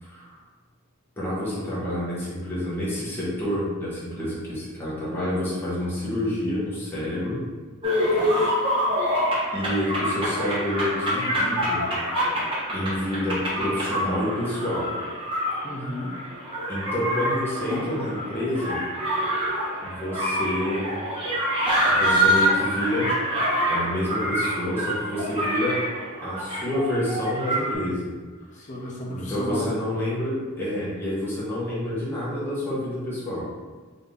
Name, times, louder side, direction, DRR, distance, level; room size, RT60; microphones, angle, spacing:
voice 1, 0.0-0.3 1.2-7.4 8.4-8.7 9.5-11.8 12.7-14.9 16.7-18.8 19.8-20.9 21.9-25.9 26.2-28.1 29.1-33.5, left 1 dB, 10° left, -9 dB, 1.1 m, -28 dB
sound 1, 7.8-27.7, equal, 25° right, 1.1 m, -26 dB
voice 2, 8.0-8.6 15.6-16.1 28.5-29.7, left 1 dB, 35° left, -2 dB, 0.7 m, -34 dB
4.0 x 2.8 x 3.4 m, 1.4 s
head